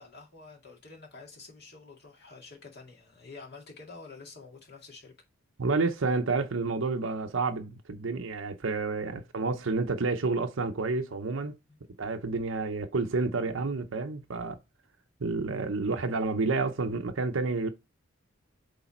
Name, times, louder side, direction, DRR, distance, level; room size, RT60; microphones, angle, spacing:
voice 1, 0.0-5.1 11.7-11.8 15.3-15.5, left 4 dB, 50° left, 2.1 m, -49 dB
voice 2, 5.6-11.5 12.0-14.6 15.2-17.7, right 3 dB, 70° right, 0.7 m, -29 dB
8.0 x 3.4 x 4.2 m
head